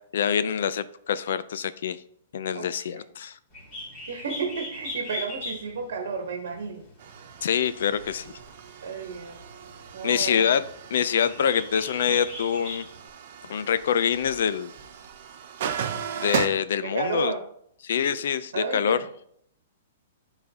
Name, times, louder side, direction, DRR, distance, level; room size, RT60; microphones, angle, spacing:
voice 1, 0.0-2.0 2.3-3.4 7.4-8.3 10.0-10.6 10.9-12.8 13.5-14.7 16.2-17.3 17.8-19.0, left 8 dB, 60° left, 14 dB, 0.4 m, -25 dB
voice 2, 2.5-3.0 4.1-6.9 8.8-9.4 9.9-10.5 16.8-17.4 18.0-18.2 18.5-19.0, right 5 dB, 75° right, 4 dB, 1.1 m, -32 dB
Bird, 3.5-13.1, left 2 dB, 25° left, 1.9 m, -40 dB
sound 1, 7.0-16.5, right 8 dB, 45° right, 0.5 m, -36 dB
11.5 x 4.0 x 2.8 m, 0.68 s
hypercardioid pair, 175°, 0 cm